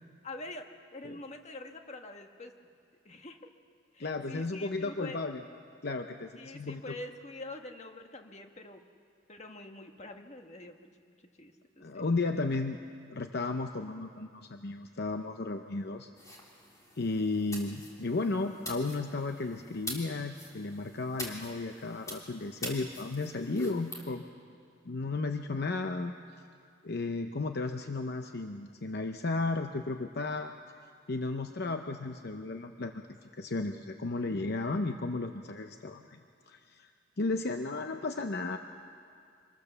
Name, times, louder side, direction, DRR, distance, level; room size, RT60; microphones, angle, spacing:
voice 1, 0.2-2.5 3.0-3.5 3.9-5.2 6.4-8.8 9.3-12.0, left 2 dB, 35° left, 5 dB, 1.4 m, -45 dB
voice 2, 4.0-5.4 5.8-6.8 11.8-12.8 13.1-16.1 17.0-24.2 24.8-26.1 26.8-30.5 31.1-33.0 33.3-36.2 36.5-36.9 37.2-38.6, left 3 dB, 55° left, 6 dB, 0.8 m, -34 dB
sound 1, 16.2-24.0, left 1 dB, 15° left, 3.3 m, -45 dB
25.5 x 21.0 x 6.9 m, 2.3 s
head